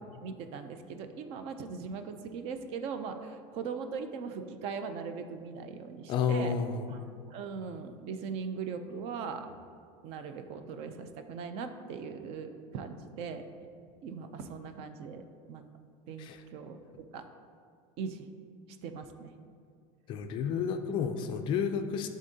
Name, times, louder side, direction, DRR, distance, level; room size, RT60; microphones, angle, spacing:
voice 1, 0.2-6.6 6.9-7.0 7.3-9.5 10.0-13.4 14.0-15.2 15.5-15.6 16.1-17.3 18.0-18.3 18.8-19.3, right 5 dB, 40° right, 8 dB, 0.4 m, -40 dB
voice 2, 6.1-6.9 16.2-16.4 20.1-22.1, left 6 dB, 35° left, 7 dB, 0.3 m, -31 dB
11.0 x 3.7 x 2.7 m, 2.2 s
cardioid pair, 165°, 15 cm